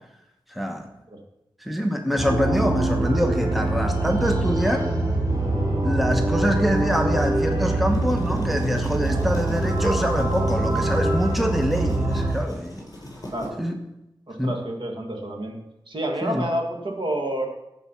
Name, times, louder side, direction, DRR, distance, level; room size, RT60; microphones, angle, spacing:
voice 1, 0.5-0.8 1.6-4.9 5.8-12.8 13.6-13.8 14.4-14.6 16.2-16.5, equal, ahead, 4 dB, 1.1 m, -25 dB
sound 1, 2.2-12.3, right 2 dB, 35° right, 3.6 m, -24 dB
sound 2, 7.7-13.5, equal, 40° left, 4.5 m, -37 dB
voice 2, 14.3-15.6 15.9-17.5, right 1 dB, 65° right, 3 dB, 1.8 m, -29 dB
14.5 x 4.9 x 5.7 m, 0.90 s
wide cardioid pair, 85°, 9 cm